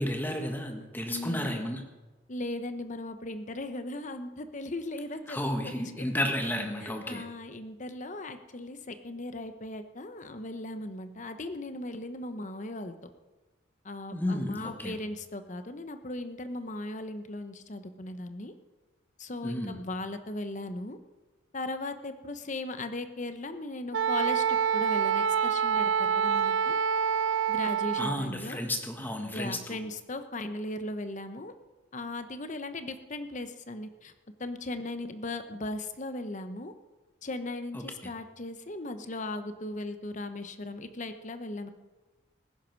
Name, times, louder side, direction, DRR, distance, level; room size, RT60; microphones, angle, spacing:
voice 1, 0.0-1.8 5.3-7.2 14.1-14.9 19.4-19.8 28.0-29.8 37.7-37.8, left 1 dB, 10° left, 4 dB, 1.5 m, -32 dB
voice 2, 1.1-1.6 2.3-6.1 6.8-12.9 13.8-18.5 19.2-21.0 21.5-26.8 27.5-28.6 29.3-31.5 31.9-34.1 34.4-36.7 37.2-41.7, left 2 dB, 40° left, 9 dB, 0.9 m, -38 dB
Wind instrument woodwind instrument, 23.9-28.2, right 7 dB, 75° right, 0.4 m, -26 dB
19.0 x 10.5 x 4.6 m, 1.2 s
head